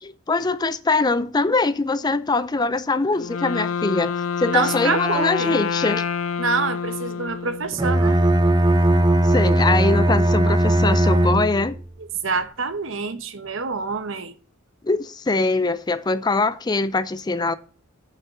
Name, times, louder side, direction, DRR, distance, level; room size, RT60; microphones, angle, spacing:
voice 1, 0.0-6.0 9.3-11.8 14.8-17.6, left 3 dB, 20° left, 0.4 m, -22 dB
Wind instrument woodwind instrument, 3.1-8.0, left 6 dB, 80° left, 0.5 m, -27 dB
voice 2, 4.5-5.5 6.4-8.2 12.2-14.3, right 4 dB, 70° right, 1.0 m, -26 dB
Bowed string instrument, 7.7-11.8, right 1 dB, 20° right, 0.7 m, -18 dB
6.0 x 5.7 x 7.1 m
head